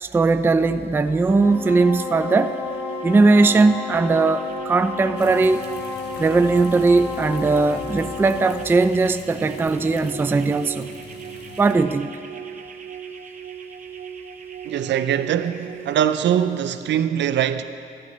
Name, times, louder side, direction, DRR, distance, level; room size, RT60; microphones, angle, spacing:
voice 1, 0.0-2.5 3.0-5.6 6.2-10.9 11.6-12.2, right 3 dB, 10° right, 0.3 m, -19 dB
sound 1, 1.0-16.0, right 8 dB, 40° right, 0.8 m, -38 dB
sound 2, 1.2-8.6, left 4 dB, 85° left, 1.9 m, -32 dB
sound 3, 5.2-11.8, left 4 dB, 55° left, 1.1 m, -43 dB
voice 2, 14.6-17.6, right 10 dB, 65° right, 0.5 m, -22 dB
15.0 x 11.0 x 3.2 m
cardioid pair, 90°, 20 cm